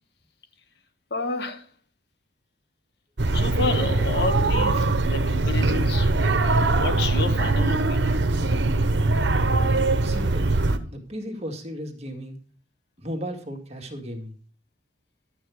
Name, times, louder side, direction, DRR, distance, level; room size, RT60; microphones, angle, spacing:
voice 1, 1.1-1.7 3.3-6.3 6.7-8.2, left 3 dB, 60° left, 1.4 m, -30 dB
sound 1, 3.2-10.8, right 2 dB, 65° right, 1.1 m, -22 dB
voice 2, 10.0-10.5 10.9-12.4 13.0-14.3, equal, 35° right, 2.1 m, -35 dB
12.0 x 8.2 x 4.8 m
head